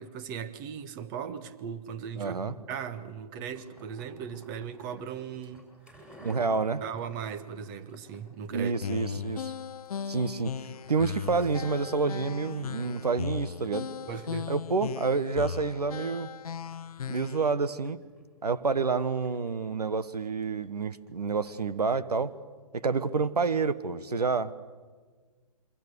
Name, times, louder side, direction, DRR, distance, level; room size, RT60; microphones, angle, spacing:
voice 1, 0.0-5.7 6.8-8.7 9.1-9.2 14.1-14.5, right 7 dB, 30° right, 1.5 m, -38 dB
voice 2, 2.1-2.5 6.2-6.8 8.5-9.5 10.1-10.5 10.9-13.9 14.5-16.3 17.1-18.0 18.4-22.3 22.7-24.5, right 4 dB, 85° right, 1.3 m, -28 dB
sound 1, 3.5-21.7, equal, 5° right, 5.6 m, -55 dB
sound 2, 8.8-17.5, left 7 dB, 70° left, 0.7 m, -37 dB
27.0 x 24.0 x 6.8 m
hypercardioid pair, 135°, 20 cm